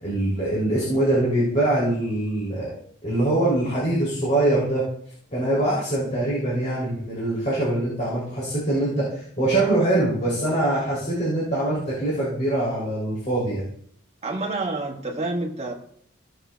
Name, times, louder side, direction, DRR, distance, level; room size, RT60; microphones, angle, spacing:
voice 1, 0.0-2.7 3.0-4.8 5.3-13.6, right 1 dB, 35° left, -7 dB, 3.1 m, -23 dB
voice 2, 14.2-15.7, right 2 dB, 35° right, -2 dB, 1.6 m, -28 dB
15.5 x 7.4 x 2.3 m, 0.64 s
head